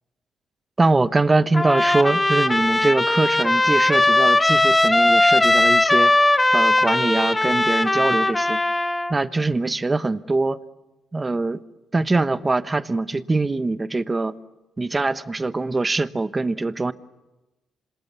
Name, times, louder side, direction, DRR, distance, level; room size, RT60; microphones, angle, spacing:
voice 1, 0.8-6.1 6.5-8.6 9.1-10.6 11.1-11.6 11.9-14.3 14.8-16.9, right 3 dB, 20° right, 1.1 m, -22 dB
Trumpet, 1.5-9.1, left 2 dB, 15° left, 1.4 m, -19 dB
26.5 x 26.5 x 8.3 m
cardioid pair, 90°, 0 cm